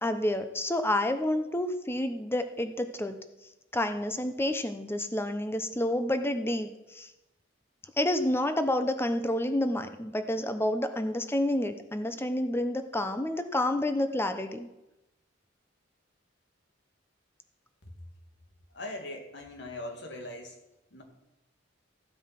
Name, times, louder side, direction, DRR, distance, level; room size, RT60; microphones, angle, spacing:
voice 1, 0.0-3.2 3.7-7.1 8.0-14.7, left 1 dB, 10° left, 9 dB, 0.9 m, -29 dB
voice 2, 18.7-20.6 20.9-21.0, left 1 dB, 65° left, 3 dB, 2.2 m, -40 dB
15.0 x 8.1 x 5.9 m, 0.95 s
head